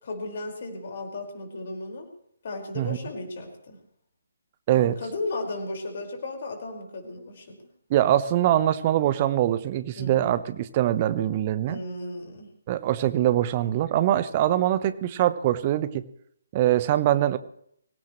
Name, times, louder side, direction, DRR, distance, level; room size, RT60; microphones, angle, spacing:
voice 1, 0.0-2.1 2.4-3.8 4.7-7.6 10.0-10.3 11.7-12.5, left 2 dB, 45° left, 2 dB, 5.2 m, -35 dB
voice 2, 7.9-11.8 12.7-16.0 16.5-17.4, right 12 dB, 30° right, 14 dB, 1.0 m, -23 dB
24.0 x 17.5 x 3.2 m, 0.70 s
figure-of-eight pair, 145°, 0 cm